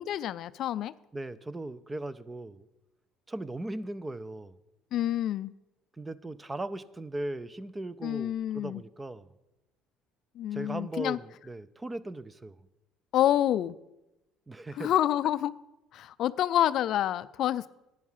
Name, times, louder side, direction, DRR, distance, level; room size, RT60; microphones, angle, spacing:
voice 1, 0.0-0.9 4.9-5.5 8.0-8.8 10.4-11.2 13.1-13.8 14.8-15.5 15.9-17.7, left 12 dB, 60° left, 16 dB, 0.4 m, -28 dB
voice 2, 1.1-2.6 3.3-4.6 6.0-9.3 10.5-12.6 14.5-14.9, right 2 dB, 15° right, 16 dB, 0.5 m, -38 dB
11.0 x 9.3 x 5.6 m, 0.93 s
cardioid pair, 115°, 0 cm